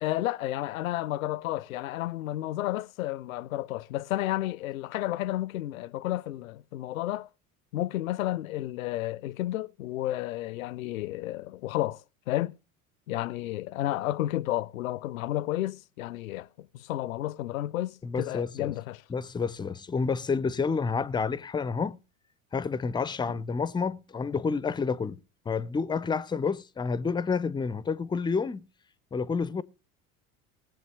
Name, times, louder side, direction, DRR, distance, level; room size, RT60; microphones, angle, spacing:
voice 1, 0.0-7.3 7.7-12.0 12.3-12.6 13.1-19.0, left 15 dB, 70° left, 0.6 m, -31 dB
voice 2, 18.0-18.7 19.1-22.0 22.5-25.2 25.5-28.7 29.1-29.6, left 5 dB, 10° left, 0.5 m, -29 dB
21.5 x 7.6 x 3.2 m
figure-of-eight pair, 70°, 43 cm